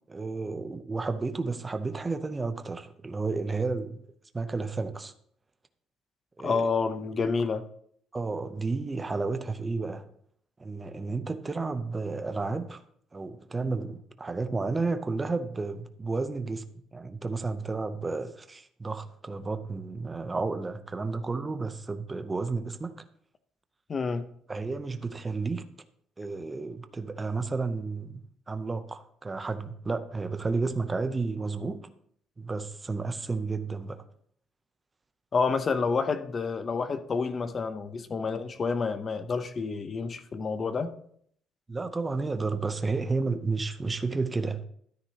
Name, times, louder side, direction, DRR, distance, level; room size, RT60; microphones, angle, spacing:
voice 1, 0.1-4.0 4.3-5.1 6.4-6.7 8.1-10.1 10.6-12.8 13.1-23.0 24.5-25.7 26.2-31.9 32.4-34.0 41.7-44.6, right 3 dB, 15° right, 0.6 m, -32 dB
voice 2, 6.4-7.6 23.9-24.3 35.3-40.9, left 4 dB, 25° left, 0.6 m, -29 dB
13.0 x 9.3 x 2.8 m
cardioid pair, 175°, 0 cm